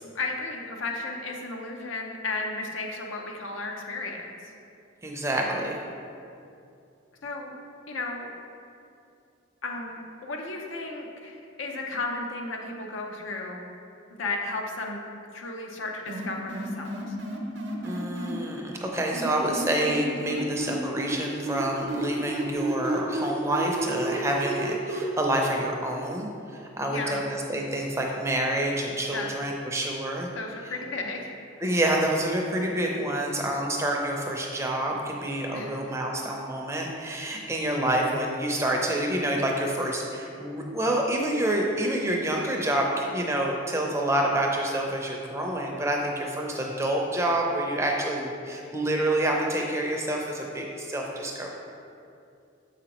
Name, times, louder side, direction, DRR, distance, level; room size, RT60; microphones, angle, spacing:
voice 1, 0.0-4.3 7.2-7.6 7.9-8.3 9.6-13.7 14.2-15.1 15.3-17.2 26.9-27.2 29.1-29.3 30.4-31.3 35.5-35.8, left 3 dB, 80° left, 1 dB, 0.7 m, -34 dB
voice 2, 5.0-5.8 17.8-30.3 31.6-51.6, right 1 dB, 15° right, 0 dB, 0.5 m, -28 dB
sound 1, 16.1-18.3 19.1-21.2 21.5-25.0, right 2 dB, 65° right, 0.7 m, -31 dB
7.0 x 5.0 x 2.9 m, 2.5 s
head